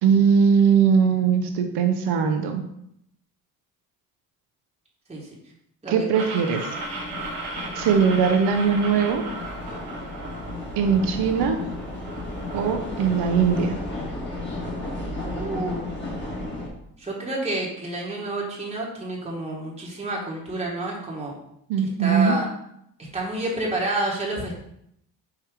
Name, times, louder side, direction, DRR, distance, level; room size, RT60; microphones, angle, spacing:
voice 1, 0.0-2.6 5.9-6.6 7.7-9.2 10.8-11.6 12.5-13.8 21.7-22.3, right 6 dB, 65° right, 5 dB, 0.7 m, -20 dB
sound 1, 6.1-13.6, right 2 dB, 85° right, 1.0 m, -37 dB
sound 2, 6.7-16.7, left 2 dB, 25° left, 1.6 m, -34 dB
voice 2, 15.2-15.8 17.0-21.3 22.0-22.5 23.1-24.6, right 2 dB, 15° right, -3 dB, 1.3 m, -29 dB
4.7 x 2.8 x 3.5 m, 0.75 s
hypercardioid pair, 60°, 44 cm